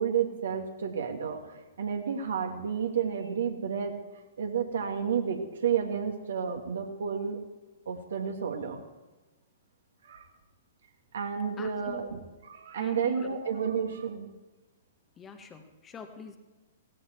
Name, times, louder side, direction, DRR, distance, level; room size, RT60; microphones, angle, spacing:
voice 1, 0.0-3.9 4.4-7.4 7.9-8.8 10.0-10.2 11.1-12.2 12.4-14.3, right 7 dB, 60° right, 3 dB, 2.6 m, -31 dB
voice 2, 11.6-12.0 12.8-13.4 15.2-16.4, left 4 dB, 15° left, 5 dB, 1.7 m, -45 dB
17.5 x 16.5 x 4.7 m, 1.2 s
figure-of-eight pair, 115°, 0 cm